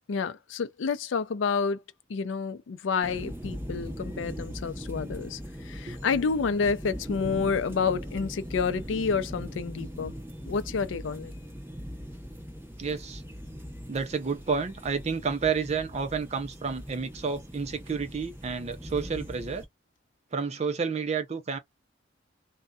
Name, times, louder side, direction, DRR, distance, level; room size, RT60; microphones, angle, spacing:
voice 1, 0.1-1.8 2.1-5.4 5.6-10.1 10.5-11.3, left 5 dB, 80° left, 0.4 m, -29 dB
sound 1, 3.0-19.7, equal, 10° right, 1.0 m, -40 dB
voice 2, 12.8-13.2 13.9-19.6 20.3-21.6, right 5 dB, 35° right, 0.4 m, -30 dB
2.6 x 2.2 x 2.3 m
head